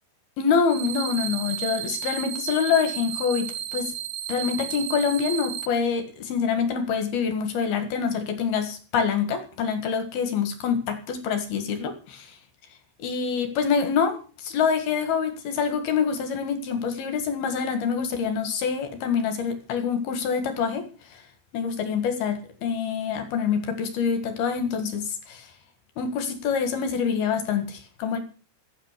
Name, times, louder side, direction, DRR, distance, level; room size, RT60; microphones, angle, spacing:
voice 1, 0.4-3.9 4.3-12.3 13.0-20.9 21.1-21.2 21.5-25.5 26.0-28.2, left 6 dB, 60° left, 8 dB, 3.1 m, -26 dB
sound 1, 0.7-5.7, right 11 dB, 85° right, 3.7 m, -33 dB
15.5 x 9.4 x 6.7 m, 0.37 s
omnidirectional pair, 5.9 m